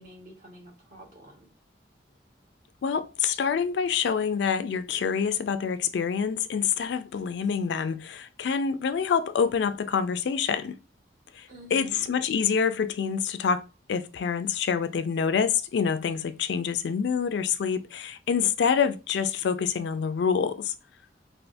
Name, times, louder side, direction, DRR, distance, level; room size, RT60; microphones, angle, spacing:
voice 1, 0.0-1.5 11.5-12.1, right 1 dB, 45° right, 1.2 m, -48 dB
voice 2, 2.8-10.8 11.3-20.7, left 6 dB, 70° left, 0.3 m, -26 dB
3.4 x 2.5 x 2.5 m
head